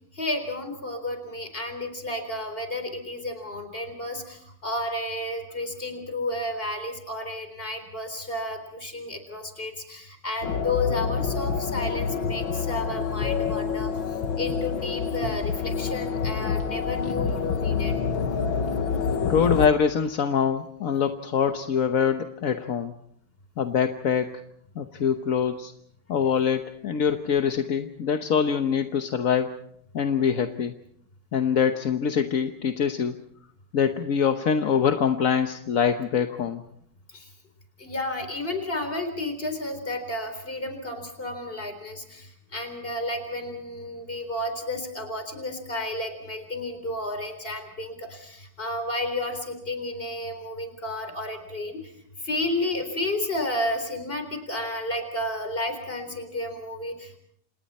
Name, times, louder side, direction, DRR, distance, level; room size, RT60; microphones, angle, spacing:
voice 1, 0.1-14.0 14.4-18.0 37.1-37.3 37.8-51.9 52.2-57.2, left 1 dB, 25° left, 6 dB, 4.2 m, -32 dB
sound 1, 10.4-19.7, left 6 dB, 65° left, 2.0 m, -27 dB
voice 2, 19.2-22.9 23.6-24.3 24.8-25.7 26.1-29.5 29.9-30.7 31.3-33.2 33.7-36.6, left 7 dB, 50° left, 7 dB, 1.2 m, -24 dB
29.5 x 27.5 x 4.3 m, 0.68 s
omnidirectional pair, 2.4 m